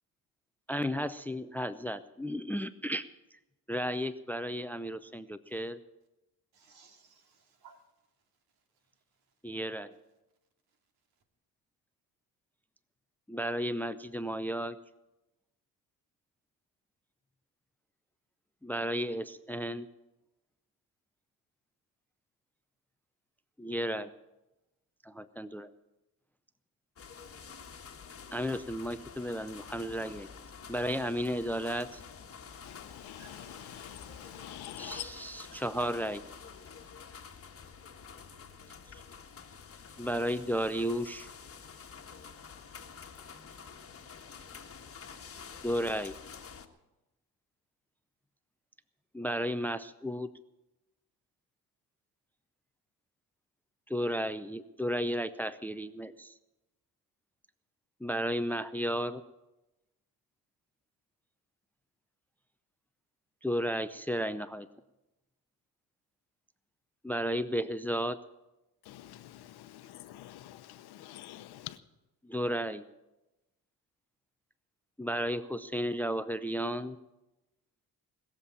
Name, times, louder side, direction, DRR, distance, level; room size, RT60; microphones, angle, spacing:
voice 1, 0.7-3.1 3.7-5.8 9.4-9.9 13.3-14.8 18.6-19.9 23.6-24.1 25.0-25.7 28.3-30.3 30.7-32.0 34.8-36.2 40.0-41.3 45.6-46.2 49.1-50.3 53.9-56.3 58.0-59.2 63.4-64.7 67.0-68.2 72.2-72.9 75.0-77.0, equal, 5° left, 0.5 m, -33 dB
voice 2, 6.5-7.8 33.1-34.0 35.5-35.6, right 6 dB, 75° right, 2.7 m, -60 dB
sound 1, 27.0-46.7, left 6 dB, 35° left, 1.5 m, -49 dB
voice 3, 32.6-35.0 68.8-71.8, left 14 dB, 80° left, 0.9 m, -46 dB
20.5 x 7.5 x 8.7 m
cardioid pair, 95°, 38 cm